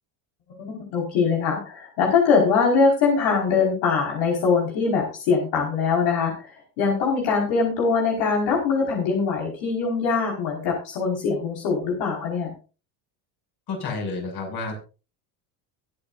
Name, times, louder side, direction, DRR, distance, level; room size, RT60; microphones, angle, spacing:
voice 1, 0.6-12.5, left 5 dB, 70° left, -1 dB, 5.1 m, -22 dB
voice 2, 13.7-14.8, left 3 dB, 50° left, 2 dB, 7.1 m, -30 dB
23.0 x 8.8 x 2.6 m, 0.33 s
supercardioid pair, 110°, 48 cm